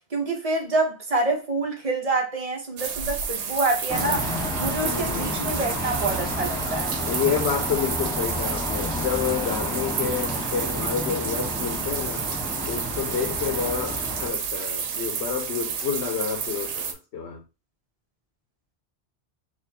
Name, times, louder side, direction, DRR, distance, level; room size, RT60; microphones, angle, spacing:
voice 1, 0.1-4.2 4.6-7.0, right 2 dB, 35° right, 1.0 m, -27 dB
sound 1, 2.8-16.9, right 6 dB, 85° right, 0.9 m, -31 dB
sound 2, 3.9-14.3, left 1 dB, 5° left, 0.8 m, -31 dB
voice 2, 4.8-5.4 7.1-12.3 12.7-17.4, left 7 dB, 75° left, 1.0 m, -29 dB
4.2 x 2.5 x 2.8 m
omnidirectional pair, 1.1 m